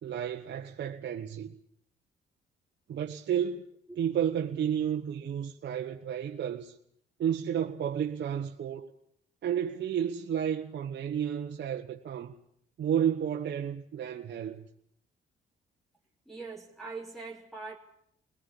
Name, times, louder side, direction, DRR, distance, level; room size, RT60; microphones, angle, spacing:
voice 1, 0.0-1.5 2.9-3.6 4.0-6.7 7.2-8.9 9.4-12.3 12.8-14.6, right 9 dB, 60° right, 1.4 m, -31 dB
voice 2, 16.3-17.8, right 4 dB, ahead, 3.1 m, -42 dB
22.0 x 18.5 x 8.5 m
cardioid pair, 90°, 20 cm